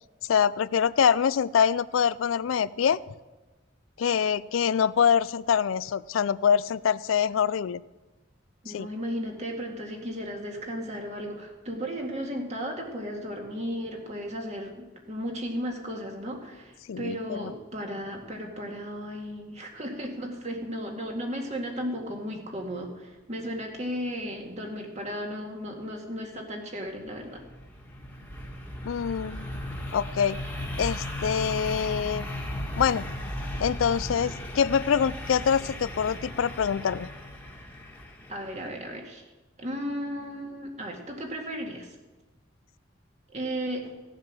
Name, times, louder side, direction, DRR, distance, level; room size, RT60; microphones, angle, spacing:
voice 1, 0.3-3.0 4.0-7.8 8.7-8.9 16.9-17.5 28.9-29.5 29.9-30.4 30.8-32.3 32.8-33.1 33.6-37.1, left 7 dB, 90° left, 18 dB, 0.4 m, -25 dB
voice 2, 8.6-27.4 38.3-39.2 39.6-41.9 43.3-43.9, equal, 35° right, 1 dB, 2.1 m, -35 dB
sound 1, 27.0-38.7, left 1 dB, 10° left, 1.7 m, -36 dB
16.0 x 7.6 x 6.2 m, 1.2 s
head